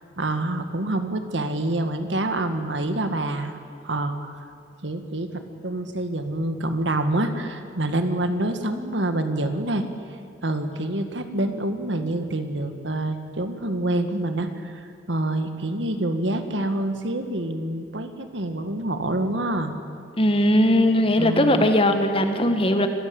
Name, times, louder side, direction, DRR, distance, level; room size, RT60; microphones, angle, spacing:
voice 1, 0.0-3.6 3.8-4.3 4.8-9.8 10.4-19.8 21.2-21.6, right 1 dB, 80° right, 8 dB, 1.8 m, -27 dB
voice 2, 20.2-22.9, left 1 dB, 30° left, 7 dB, 1.6 m, -19 dB
26.0 x 15.0 x 8.8 m, 2.3 s
head